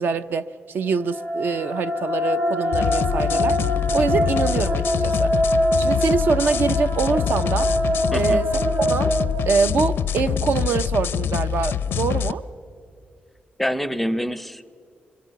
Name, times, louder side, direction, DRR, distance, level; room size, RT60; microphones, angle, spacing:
voice 1, 0.0-3.6 3.9-5.3 5.8-7.7 8.1-8.5 8.9-9.1 9.4-12.4, right 5 dB, 60° right, 11 dB, 0.7 m, -24 dB
sound 1, 0.9-10.1, equal, 90° right, 3.9 m, -24 dB
sound 2, 2.7-12.3, left 9 dB, 90° left, 0.5 m, -25 dB
voice 2, 8.1-8.4 13.6-14.8, equal, 5° left, 14 dB, 0.5 m, -26 dB
25.0 x 23.0 x 8.1 m, 2.4 s
wide cardioid pair, 170°, 4 cm